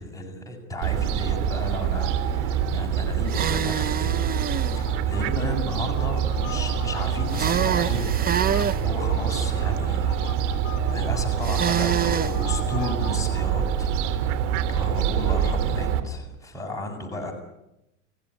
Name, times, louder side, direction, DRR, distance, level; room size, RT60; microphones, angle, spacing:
voice 1, 0.0-4.4 4.7-8.1 8.8-10.2 10.9-14.4 14.7-17.3, left 1 dB, 10° left, 1 dB, 7.4 m, -34 dB
Fowl, 0.8-16.0, right 8 dB, 65° right, 3.5 m, -25 dB
sound 1, 3.3-4.8 7.3-8.8 11.4-12.4, right 8 dB, 25° right, 1.1 m, -26 dB
sound 2, 4.7-5.3 5.6-13.5, left 7 dB, 55° left, 3.5 m, -41 dB
29.5 x 17.0 x 9.9 m, 0.85 s
hypercardioid pair, 110°, 39 cm